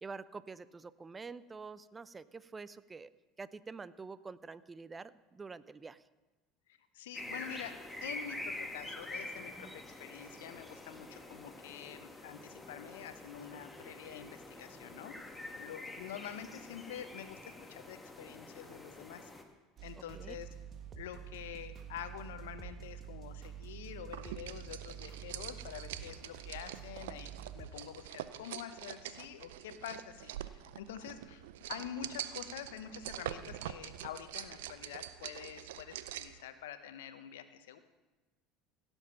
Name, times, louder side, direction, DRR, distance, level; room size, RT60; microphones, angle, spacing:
voice 1, 0.0-3.1 3.4-6.0 9.6-9.8 20.1-20.4, right 4 dB, 25° right, 17 dB, 0.5 m, -47 dB
voice 2, 6.9-15.1 15.6-19.3 19.8-20.5 21.0-31.4 31.7-37.8, left 9 dB, 75° left, 11 dB, 0.8 m, -47 dB
sound 1, 7.1-19.4, left 2 dB, 10° left, 1.8 m, -46 dB
sound 2, 19.8-27.7, right 8 dB, 40° right, 1.7 m, -48 dB
sound 3, 24.1-36.4, right 12 dB, 75° right, 0.5 m, -45 dB
16.5 x 7.0 x 5.8 m, 1.2 s
hypercardioid pair, 70°, 0 cm